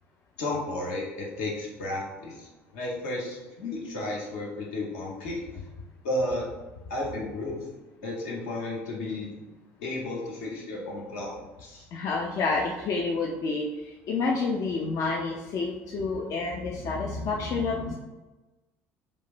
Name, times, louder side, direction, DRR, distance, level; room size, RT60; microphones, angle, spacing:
voice 1, 0.4-2.5 2.7-5.4 6.0-6.5 6.9-7.7 8.0-9.4 9.8-11.9, left 1 dB, 70° left, -3 dB, 0.8 m, -33 dB
voice 2, 11.9-17.9, left 3 dB, 50° left, -1 dB, 0.3 m, -29 dB
3.1 x 2.1 x 2.4 m, 1.1 s
hypercardioid pair, 60°, 7 cm